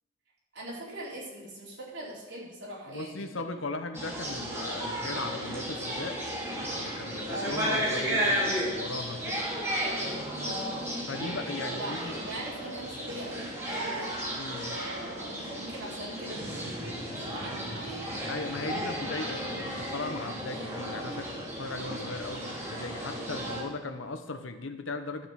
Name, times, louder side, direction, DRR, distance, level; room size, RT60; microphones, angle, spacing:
voice 1, 0.5-3.4 7.3-7.6 10.4-10.9 11.7-14.1 14.7-18.1 23.3-23.6, right 1 dB, 60° right, -5 dB, 4.2 m, -41 dB
voice 2, 2.9-6.2 6.7-9.5 11.1-12.2 14.4-14.7 18.3-25.3, left 3 dB, 75° left, 8 dB, 1.0 m, -37 dB
sound 1, 3.9-23.6, equal, 15° right, 2.9 m, -34 dB
11.5 x 7.6 x 6.4 m, 1.1 s
head